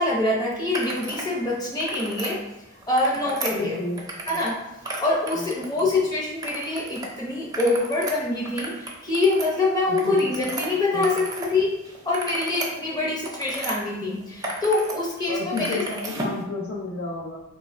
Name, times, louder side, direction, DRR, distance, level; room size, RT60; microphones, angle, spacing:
voice 1, 0.0-2.4 2.9-3.8 4.3-4.5 5.0-11.7 12.0-15.8, left 2 dB, 20° left, -5 dB, 0.8 m, -25 dB
sound 1, 0.7-1.3 1.7-2.3 2.8-4.6 4.8-6.0 6.4-7.1 7.4-11.5 11.8-13.8 14.2-15.0 15.2-16.4, right 2 dB, 20° right, 0.5 m, -34 dB
voice 2, 3.2-4.0 4.3-4.4 5.3-5.9 9.9-10.3 10.9-11.3 15.3-17.4, left 3 dB, 50° left, -3 dB, 0.5 m, -32 dB
3.0 x 2.3 x 4.1 m, 0.91 s
head